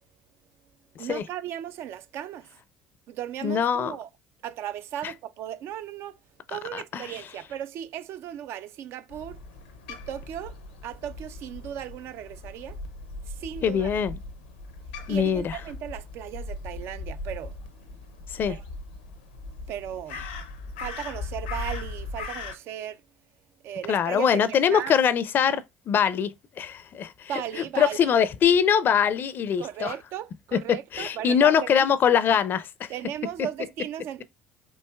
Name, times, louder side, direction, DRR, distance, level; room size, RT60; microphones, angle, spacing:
voice 1, 1.0-2.6 3.1-4.1 4.4-6.2 6.5-9.4 9.9-10.6 10.8-12.8 13.3-13.9 15.1-17.6 18.5-18.6 19.7-20.2 20.8-23.0 23.6-24.9 27.3-28.2 29.6-31.9 32.9-34.2, right 10 dB, 60° right, 0.4 m, -36 dB
voice 2, 3.4-4.0 6.7-7.0 13.6-14.2 15.1-15.6 18.3-18.6 23.9-26.3 26.6-27.3 27.8-29.9 30.9-32.9, left 8 dB, 45° left, 0.4 m, -23 dB
Crow, 9.1-22.6, left 3 dB, 80° left, 0.7 m, -39 dB
4.6 x 2.6 x 2.2 m
hypercardioid pair, 60°, 5 cm